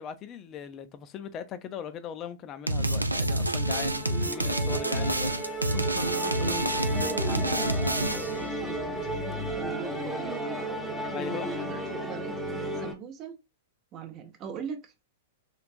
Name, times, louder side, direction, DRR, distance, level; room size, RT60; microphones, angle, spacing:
voice 1, 0.0-5.3 11.1-11.7, left 8 dB, 30° left, 0.5 m, -39 dB
sound 1, 2.7-8.4, right 1 dB, 90° right, 0.4 m, -28 dB
Musical instrument, 2.8-12.9, right 1 dB, ahead, 0.8 m, -33 dB
voice 2, 5.7-10.6 11.4-13.4 13.9-14.9, right 6 dB, 30° right, 0.7 m, -41 dB
3.3 x 3.1 x 2.4 m
figure-of-eight pair, 100°, 0 cm